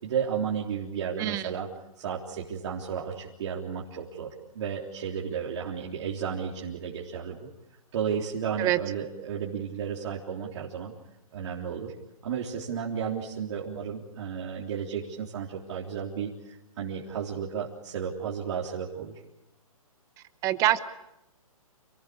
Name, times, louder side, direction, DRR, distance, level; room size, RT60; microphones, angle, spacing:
voice 1, 0.0-1.7 2.0-7.5 7.9-10.9 11.3-11.9 12.2-19.2, right 7 dB, 50° right, -3 dB, 3.6 m, -33 dB
voice 2, 1.2-1.5 8.6-8.8 20.4-20.8, right 15 dB, 15° right, 14 dB, 0.9 m, -24 dB
29.0 x 19.0 x 8.6 m, 0.90 s
hypercardioid pair, 155°, 19 cm